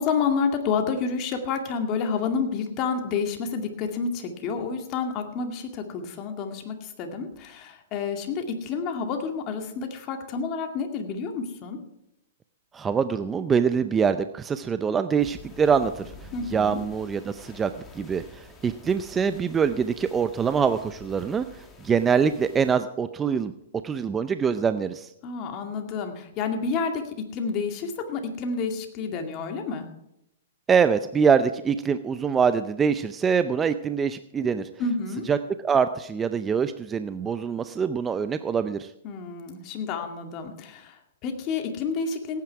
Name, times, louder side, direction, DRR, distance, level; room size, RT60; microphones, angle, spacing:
voice 1, 0.0-11.8 16.3-16.8 25.2-29.9 34.8-35.3 39.0-42.4, left 5 dB, 35° left, 5 dB, 2.2 m, -29 dB
voice 2, 12.7-16.1 16.5-21.4 21.8-23.5 23.8-25.1 30.7-34.7 35.3-38.9, right 6 dB, 15° right, 11 dB, 0.5 m, -24 dB
sound 1, 15.2-22.7, left 3 dB, 15° left, 2.3 m, -48 dB
17.5 x 9.5 x 4.7 m, 0.81 s
hypercardioid pair, 135°, 0 cm